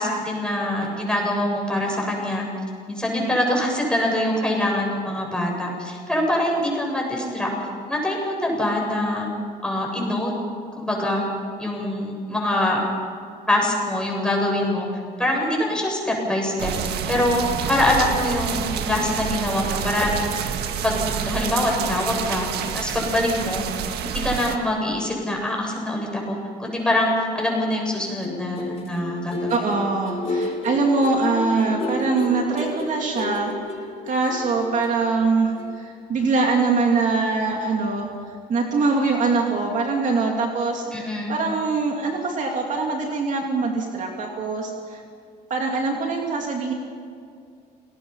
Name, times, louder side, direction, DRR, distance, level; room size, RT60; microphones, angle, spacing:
voice 1, 0.0-2.5 2.9-7.5 7.9-9.3 9.6-10.3 10.7-11.2 11.6-12.8 13.5-14.9 15.2-20.1 20.8-22.5 22.7-23.6 24.0-29.5 40.9-41.3, left 1 dB, 5° left, -1 dB, 7.8 m, -24 dB
sound 1, 16.6-24.6, right 8 dB, 75° right, 1.7 m, -28 dB
sound 2, 28.1-35.3 35.6-35.8, left 2 dB, 35° left, 6.2 m, -31 dB
voice 2, 29.5-33.5 34.0-45.0 45.5-46.7, right 3 dB, 50° right, 1 dB, 2.9 m, -23 dB
28.5 x 19.0 x 5.7 m, 2.3 s
cardioid pair, 110°, 17 cm